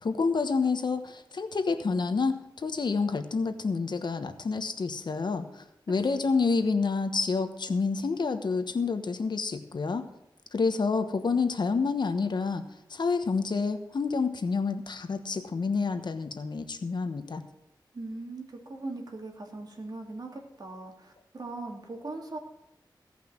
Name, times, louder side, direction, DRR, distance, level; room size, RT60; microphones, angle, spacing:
voice 1, 0.0-10.0 10.5-12.6 12.9-17.4, left 4 dB, 65° left, 8 dB, 1.1 m, -28 dB
voice 2, 17.9-22.4, right 2 dB, 55° right, 2 dB, 2.6 m, -40 dB
16.5 x 5.8 x 7.4 m, 0.84 s
wide cardioid pair, 80°, 8 cm